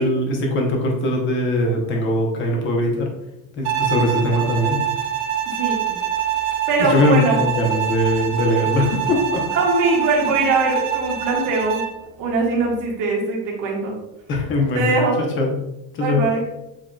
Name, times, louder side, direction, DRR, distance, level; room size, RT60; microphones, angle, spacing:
voice 1, 0.0-3.1 3.5-4.8 6.8-9.4 14.3-15.6 15.9-16.3, left 1 dB, 30° left, 0 dB, 0.8 m, -21 dB
Bowed string instrument, 3.6-12.0, right 9 dB, 70° right, 0.7 m, -25 dB
voice 2, 5.5-5.9 6.7-7.4 9.5-11.8 12.2-13.9 14.7-15.2 16.0-16.4, right 3 dB, 50° right, -2 dB, 1.4 m, -21 dB
7.4 x 2.8 x 2.3 m, 0.93 s
cardioid pair, 175°, 39 cm